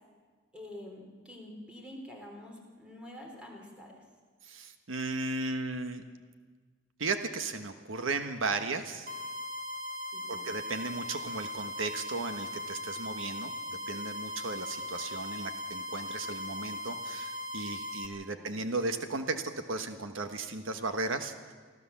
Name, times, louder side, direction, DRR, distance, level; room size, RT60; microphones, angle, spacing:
voice 1, 0.5-4.0 10.1-10.5 18.4-18.6, left 1 dB, 5° right, 0 dB, 3.9 m, -47 dB
voice 2, 4.4-6.0 7.0-9.1 10.3-21.5, right 3 dB, 90° right, 7 dB, 1.3 m, -35 dB
sound 1, 9.1-18.1, left 1 dB, 45° right, 1.6 m, -39 dB
24.5 x 14.5 x 7.2 m, 1.5 s
head